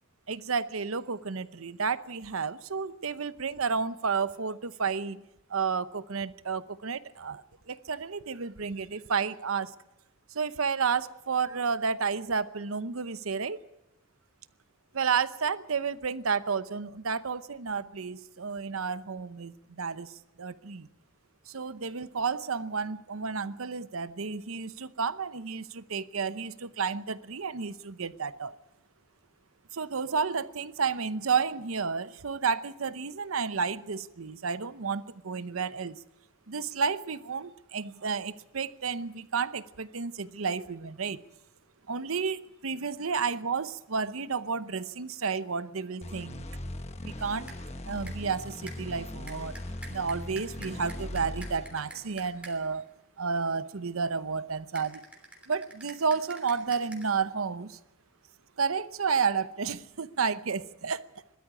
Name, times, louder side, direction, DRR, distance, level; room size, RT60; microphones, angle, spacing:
voice 1, 0.3-5.2 5.5-9.7 10.3-13.6 14.9-20.9 21.5-28.6 29.7-36.0 36.5-41.2 41.9-46.5 47.0-47.5 47.9-49.6 49.9-52.9 53.2-55.0 55.5-57.8 58.6-61.1, right 5 dB, 90° right, 0.8 m, -31 dB
sound 1, 46.0-52.5, left 1 dB, 30° left, 1.1 m, -40 dB
sound 2, 47.0-47.2 47.5-47.7 48.1-48.4 48.7-52.8 54.8-57.1, right 1 dB, 5° right, 3.2 m, -49 dB
20.5 x 13.0 x 9.7 m
head